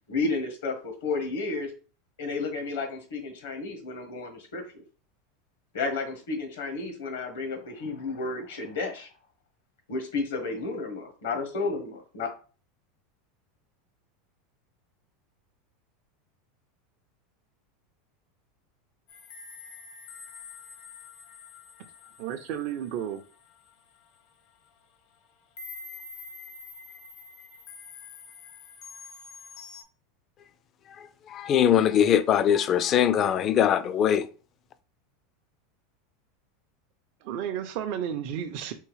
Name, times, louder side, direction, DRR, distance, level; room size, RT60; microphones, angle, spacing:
voice 1, 0.1-1.7 2.2-4.8 5.7-9.1 9.9-12.3, left 3 dB, 80° left, 1.2 m, -32 dB
sound 1, 19.1-24.2 24.7-24.8 25.6-29.8, left 5 dB, 60° left, 0.7 m, -46 dB
voice 2, 22.2-23.2 37.2-38.7, right 9 dB, 60° right, 0.4 m, -32 dB
voice 3, 31.0-34.3, left 9 dB, 40° left, 0.4 m, -22 dB
3.6 x 3.0 x 3.2 m
hypercardioid pair, 100°, 0 cm